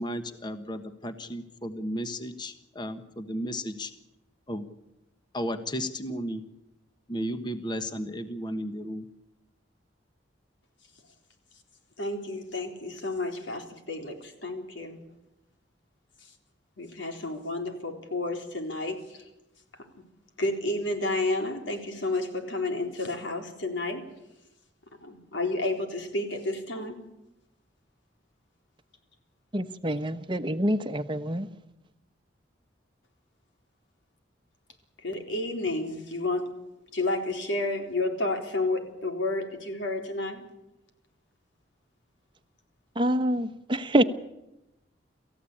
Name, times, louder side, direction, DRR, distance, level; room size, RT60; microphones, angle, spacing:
voice 1, 0.0-3.9 4.5-4.7 5.3-6.4 7.1-9.1, equal, 25° left, 1.3 m, -34 dB
voice 2, 12.0-15.0 16.8-19.2 20.4-24.0 25.0-27.0 35.0-36.5 36.9-40.4, left 2 dB, 80° left, 3.9 m, -31 dB
voice 3, 29.5-31.5 43.0-44.0, right 1 dB, 25° right, 1.1 m, -26 dB
28.5 x 15.0 x 8.6 m
head